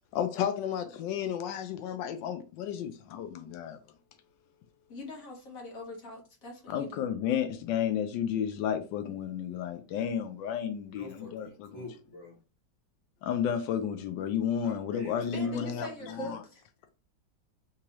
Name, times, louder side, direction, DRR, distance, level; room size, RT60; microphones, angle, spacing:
voice 1, 0.1-3.8 6.7-11.7 13.2-15.9 16.2-16.4, left 8 dB, 85° left, 1.3 m, -32 dB
voice 2, 4.9-7.1 15.3-16.6, left 1 dB, 50° left, 1.6 m, -42 dB
voice 3, 10.9-12.3 14.6-15.6 16.0-16.1, left 2 dB, 20° left, 1.4 m, -47 dB
3.6 x 2.9 x 2.9 m
omnidirectional pair, 1.9 m